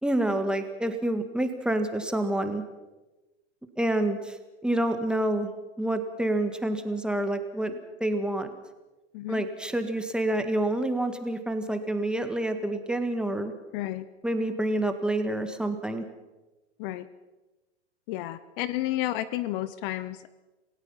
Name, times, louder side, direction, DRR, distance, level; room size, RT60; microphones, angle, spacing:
voice 1, 0.0-2.6 3.8-4.4 4.6-5.5 5.8-8.5 9.3-13.5 14.2-16.0, right 1 dB, ahead, 7 dB, 1.8 m, -28 dB
voice 2, 13.7-14.1 16.8-17.1 18.1-20.3, left 14 dB, 50° left, 15 dB, 1.0 m, -31 dB
28.0 x 16.5 x 5.7 m, 1.1 s
hypercardioid pair, 115°, 35 cm